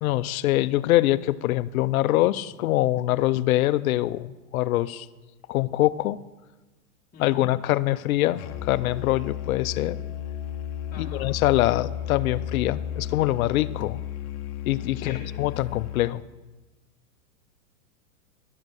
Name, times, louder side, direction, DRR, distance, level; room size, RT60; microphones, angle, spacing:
voice 1, 0.0-5.1 5.5-6.2 7.2-10.0 11.0-14.0 14.7-16.2, left 15 dB, 70° left, 17 dB, 0.6 m, -24 dB
voice 2, 7.1-7.5 10.9-11.3 14.9-15.2, left 5 dB, 20° left, -4 dB, 1.4 m, -42 dB
Musical instrument, 8.4-16.2, left 10 dB, 40° left, 0.9 m, -34 dB
12.0 x 7.4 x 6.2 m, 1.2 s
hypercardioid pair, 125°, 44 cm